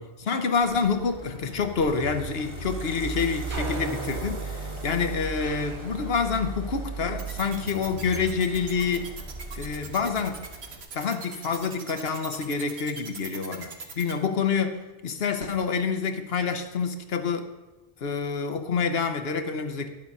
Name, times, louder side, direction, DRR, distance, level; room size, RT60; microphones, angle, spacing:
voice 1, 0.0-9.1 9.5-10.5 10.9-17.5 18.0-19.9, left 5 dB, 65° left, 7 dB, 1.1 m, -27 dB
sound 1, 0.6-10.8, right 3 dB, 25° right, 1.6 m, -37 dB
sound 2, 3.5-6.3, right 4 dB, 90° right, 1.4 m, -40 dB
sound 3, 7.2-14.1, right 5 dB, 70° right, 1.3 m, -40 dB
10.5 x 7.3 x 5.5 m, 1.1 s
omnidirectional pair, 1.1 m